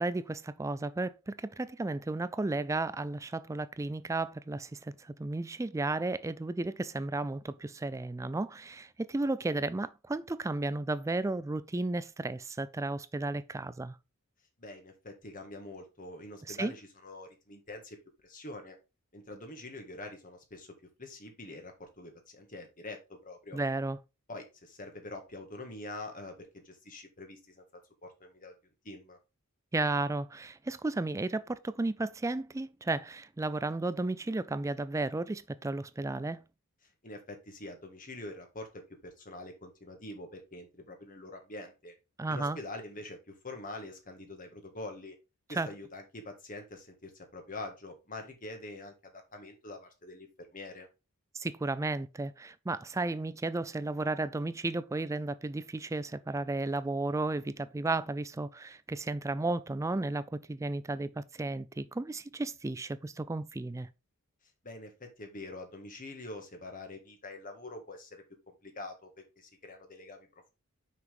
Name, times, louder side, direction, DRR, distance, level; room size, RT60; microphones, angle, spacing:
voice 1, 0.0-14.0 16.5-16.7 23.5-24.0 29.7-36.4 42.2-42.6 45.6-45.7 51.3-63.9, right 2 dB, 15° right, 0.3 m, -33 dB
voice 2, 14.6-18.8 19.1-23.6 24.3-27.6 28.0-28.5 28.8-29.2 36.8-41.9 42.3-45.1 45.5-50.9 64.6-70.5, left 2 dB, 35° left, 1.7 m, -45 dB
5.9 x 5.8 x 3.5 m
head